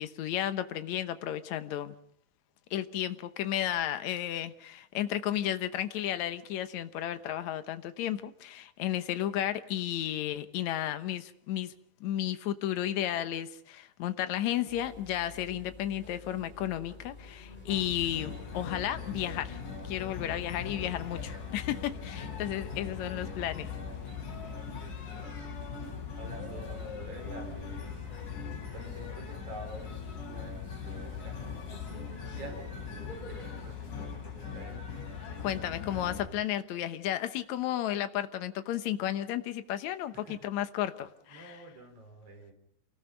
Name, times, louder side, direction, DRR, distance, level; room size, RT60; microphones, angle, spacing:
voice 1, 0.0-2.0 2.7-11.7 12.0-19.6 19.8-23.7 35.4-41.5, left 12 dB, 70° left, 10 dB, 2.3 m, -33 dB
sound 1, 14.7-33.5, left 3 dB, 15° left, 6.1 m, -50 dB
sound 2, 17.7-36.3, left 6 dB, 85° left, 5.8 m, -40 dB
voice 2, 24.3-25.5 26.2-31.7 32.2-34.8 40.1-40.5 41.3-42.5, right 2 dB, 50° right, 5 dB, 5.0 m, -49 dB
28.0 x 19.5 x 5.3 m, 0.65 s
omnidirectional pair, 3.5 m